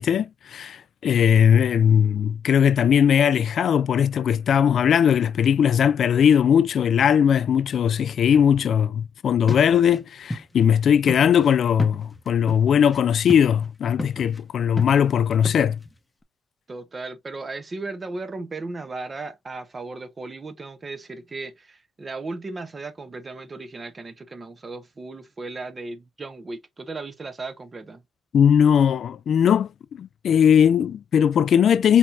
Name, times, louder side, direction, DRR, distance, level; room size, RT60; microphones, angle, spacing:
voice 1, 0.0-15.8 28.3-29.7 30.0-32.0, left 8 dB, 60° left, 0.3 m, -19 dB
sound 1, 9.5-10.0 10.3-10.4 10.7-10.8 11.1-13.0 13.3-13.7 14.0-14.4 14.8-16.0, left 1 dB, 15° left, 0.8 m, -32 dB
voice 2, 16.7-28.0, right 3 dB, 30° right, 0.9 m, -36 dB
4.4 x 4.1 x 2.6 m
cardioid pair, 90°, 0 cm